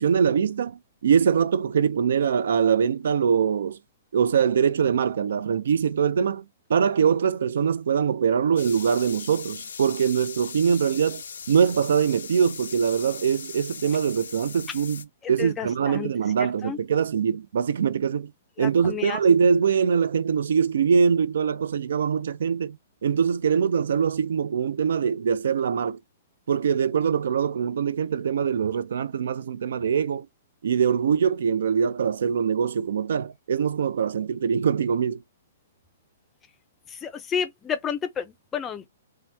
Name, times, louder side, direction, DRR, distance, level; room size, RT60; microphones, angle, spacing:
voice 1, 0.0-3.8 4.1-6.4 6.7-18.3 18.6-22.8 23.0-26.0 26.5-30.3 30.6-35.2, right 7 dB, 70° right, 0.4 m, -23 dB
sound 1, 8.6-15.0, left 6 dB, 90° left, 0.5 m, -39 dB
voice 2, 15.2-16.1 16.6-16.8 18.6-19.2 36.9-38.9, left 7 dB, 15° left, 0.4 m, -31 dB
2.9 x 2.1 x 3.3 m
hypercardioid pair, 165°, 0 cm